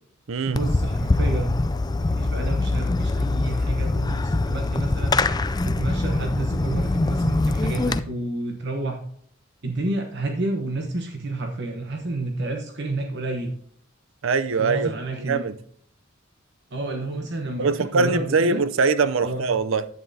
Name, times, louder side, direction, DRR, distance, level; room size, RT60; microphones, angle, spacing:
voice 1, 0.4-1.5 2.0-5.2 5.6-9.0 9.6-13.5 14.6-15.6 16.7-18.6 19.2-19.5, right 2 dB, 60° right, 1.1 m, -30 dB
Fireworks, 0.5-8.0, left 2 dB, 20° left, 0.4 m, -23 dB
voice 2, 14.2-14.9 15.2-15.5 17.6-19.9, right 4 dB, 85° right, 0.6 m, -22 dB
11.0 x 9.0 x 2.7 m
head